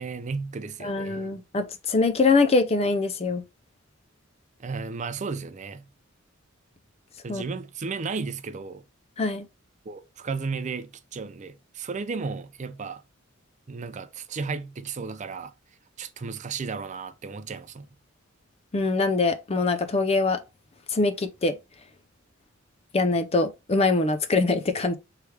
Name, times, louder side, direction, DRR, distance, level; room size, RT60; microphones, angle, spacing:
voice 1, 0.0-1.3 4.6-5.8 7.2-8.8 9.9-13.0 13.7-15.5 16.0-17.9, right 4 dB, 35° right, 0.4 m, -34 dB
voice 2, 0.8-3.4 7.3-7.4 9.2-9.5 18.7-20.4 20.9-21.5 22.9-25.0, left 3 dB, 30° left, 0.5 m, -23 dB
3.2 x 3.2 x 4.7 m
head